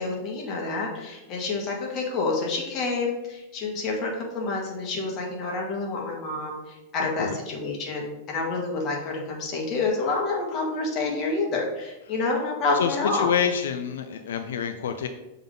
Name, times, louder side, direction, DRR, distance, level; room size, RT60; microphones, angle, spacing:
voice 1, 0.0-13.3, left 3 dB, 35° left, -1 dB, 1.6 m, -28 dB
voice 2, 12.7-15.1, left 7 dB, 85° left, 7 dB, 0.5 m, -27 dB
6.9 x 3.6 x 3.8 m, 0.99 s
supercardioid pair, 145°, 0 cm